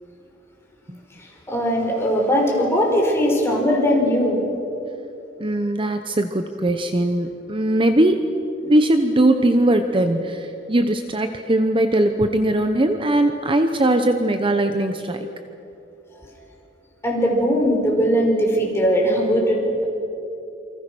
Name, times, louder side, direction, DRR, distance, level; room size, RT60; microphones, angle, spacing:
voice 1, 1.2-4.4 16.2-16.3 17.0-19.9, equal, 15° left, -1 dB, 5.0 m, -20 dB
voice 2, 5.4-8.2 8.6-15.3, right 1 dB, 30° right, 7 dB, 0.9 m, -20 dB
28.0 x 25.0 x 6.2 m, 3.0 s
head